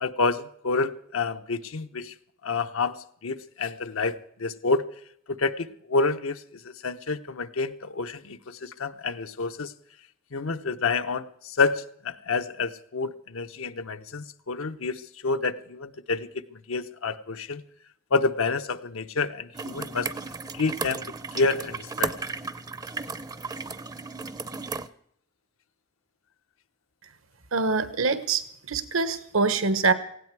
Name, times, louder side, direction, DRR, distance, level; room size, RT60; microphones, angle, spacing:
voice 1, 0.0-2.1 2.4-4.8 5.3-9.7 10.3-17.6 18.1-20.1 20.5-22.2, left 4 dB, 85° left, 8 dB, 0.8 m, -28 dB
sound 1, 19.5-24.9, right 4 dB, 20° right, 0.5 m, -34 dB
voice 2, 27.5-29.9, right 4 dB, 80° right, 12 dB, 1.2 m, -24 dB
18.5 x 16.0 x 4.7 m, 0.67 s
head